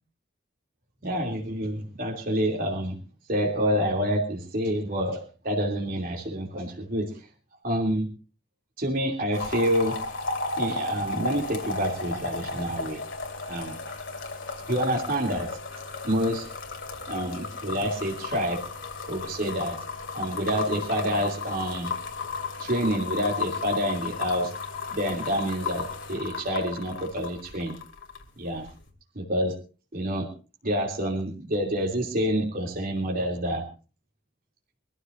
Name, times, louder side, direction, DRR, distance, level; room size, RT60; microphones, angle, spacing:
voice 1, 1.0-3.0 3.3-7.3 7.6-8.1 8.8-10.0 10.6-13.0 13.5-13.8 14.7-15.5 16.0-16.5 17.1-18.6 19.1-19.8 20.1-21.9 22.6-24.4 24.9-27.7 28.4-28.7 29.1-29.6 29.9-30.3 30.6-33.6, equal, 50° right, -1 dB, 3.0 m, -27 dB
sound 1, 9.3-28.3 28.6-28.9, left 4 dB, 75° left, 2.8 m, -34 dB
24.0 x 14.5 x 2.6 m, 0.35 s
head